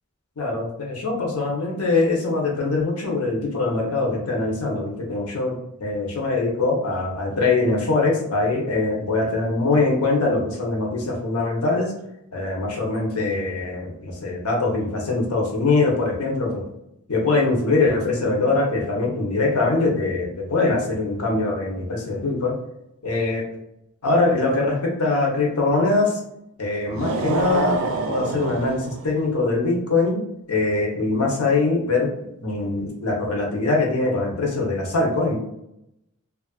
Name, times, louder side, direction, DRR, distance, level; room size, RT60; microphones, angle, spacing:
voice 1, 0.4-11.9 12.3-16.6 17.1-22.5 23.0-23.4 24.0-26.2 26.6-27.8 28.1-30.2 30.5-32.1 32.4-35.4, left 3 dB, 90° left, -1 dB, 0.8 m, -22 dB
sound 1, 26.9-29.3, right 3 dB, 65° right, 0.3 m, -27 dB
2.9 x 2.4 x 2.3 m, 0.83 s
head